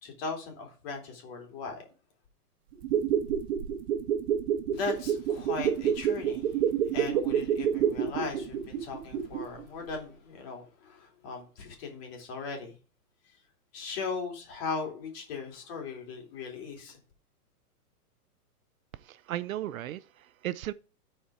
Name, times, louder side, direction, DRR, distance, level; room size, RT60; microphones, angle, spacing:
voice 1, 0.0-1.9 4.7-12.8 13.2-13.4 13.7-17.0, left 4 dB, 40° left, 2.8 m, -38 dB
sound 1, 2.7-9.6 9.9-10.0, right 9 dB, 40° right, 1.4 m, -28 dB
voice 2, 18.9-20.7, right 13 dB, 65° right, 0.5 m, -36 dB
12.5 x 4.4 x 4.8 m
hypercardioid pair, 150°, 46 cm